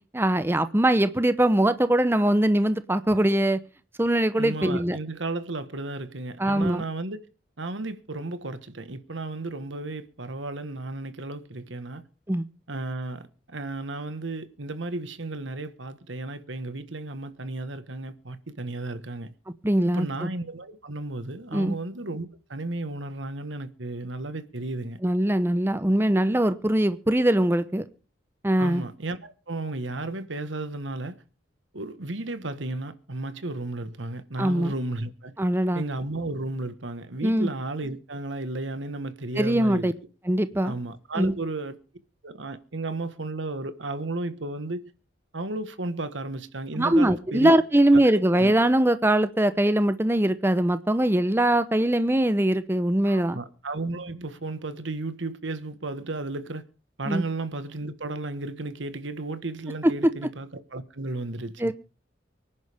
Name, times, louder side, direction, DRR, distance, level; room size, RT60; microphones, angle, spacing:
voice 1, 0.1-3.6 4.0-5.0 6.4-6.8 12.3-12.4 19.6-20.3 21.5-21.7 25.0-27.8 28.4-28.8 34.4-34.7 35.4-35.8 37.2-37.5 39.4-39.9 40.2-40.7 41.2-41.3 46.8-53.4 57.1-57.2 59.8-60.1 61.6-61.7, right 1 dB, 10° right, 0.8 m, -22 dB
voice 2, 4.4-7.2 7.6-12.0 12.7-19.3 19.9-25.0 28.6-31.2 31.7-35.3 35.7-39.9 40.6-41.8 42.2-44.9 45.3-47.5 47.9-48.5 53.0-56.6 57.0-61.7, right 2 dB, 80° right, 1.4 m, -33 dB
24.5 x 10.5 x 3.5 m
head